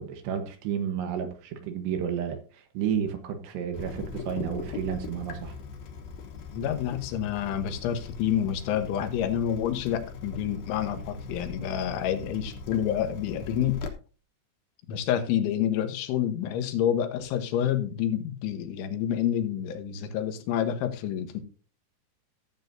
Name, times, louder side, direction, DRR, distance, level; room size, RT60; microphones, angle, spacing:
voice 1, 0.0-2.4 2.7-5.5, right 8 dB, 75° right, 3.2 m, -31 dB
Water tap faucet / Drip, 3.7-13.9, left 5 dB, 65° left, 2.5 m, -40 dB
voice 2, 6.5-13.8 14.9-21.4, left 9 dB, 90° left, 3.6 m, -28 dB
15.0 x 8.0 x 2.7 m
omnidirectional pair, 5.2 m